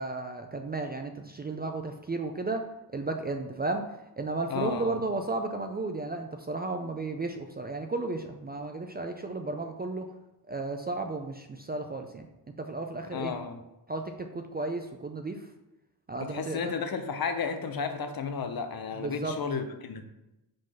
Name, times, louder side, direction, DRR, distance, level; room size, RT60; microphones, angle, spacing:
voice 1, 0.0-2.7 2.9-3.9 4.2-10.1 10.5-12.3 12.6-13.3 13.9-15.4 16.1-16.8 19.0-19.3, right 3 dB, 25° right, 5 dB, 0.3 m, -33 dB
voice 2, 4.5-5.0 13.1-13.6 16.2-20.0, left 6 dB, 55° left, 7 dB, 0.7 m, -33 dB
5.2 x 3.8 x 5.5 m, 0.95 s
wide cardioid pair, 140°, 43 cm